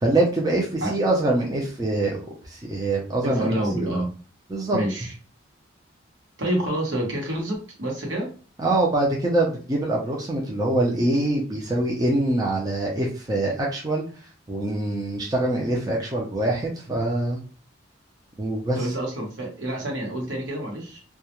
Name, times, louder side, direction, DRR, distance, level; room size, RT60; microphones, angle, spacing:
voice 1, 0.0-2.2 2.4-3.9 4.5-4.8 8.6-14.0 14.5-17.4 18.4-18.8, right 2 dB, 20° right, -2 dB, 0.4 m, -24 dB
voice 2, 3.2-4.1 4.7-5.1 6.4-8.3 18.7-21.0, right 1 dB, 75° right, -1 dB, 1.0 m, -28 dB
2.3 x 2.1 x 2.9 m, 0.38 s
head